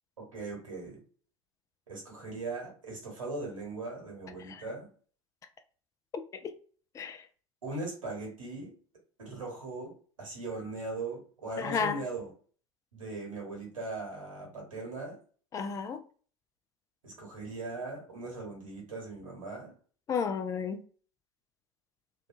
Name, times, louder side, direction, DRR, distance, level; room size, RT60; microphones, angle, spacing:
voice 1, 0.3-1.0 1.9-4.9 7.6-8.7 9.2-9.9 10.2-12.3 12.9-15.2 17.0-19.7, right 3 dB, 75° right, 1.2 m, -39 dB
voice 2, 11.6-12.0 15.5-16.0 20.1-20.8, left 6 dB, 20° left, 0.3 m, -32 dB
2.6 x 2.3 x 2.5 m
figure-of-eight pair, 80°, 17 cm